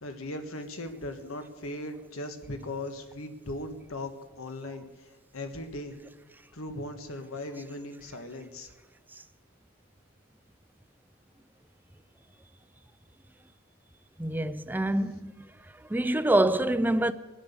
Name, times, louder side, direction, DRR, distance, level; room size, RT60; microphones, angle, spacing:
voice 1, 0.0-4.1 4.4-5.9 6.5-8.7, left 1 dB, 90° left, 1.5 m, -38 dB
voice 2, 14.2-15.5 15.9-17.1, right 1 dB, 10° right, 0.5 m, -26 dB
22.0 x 7.8 x 7.0 m
head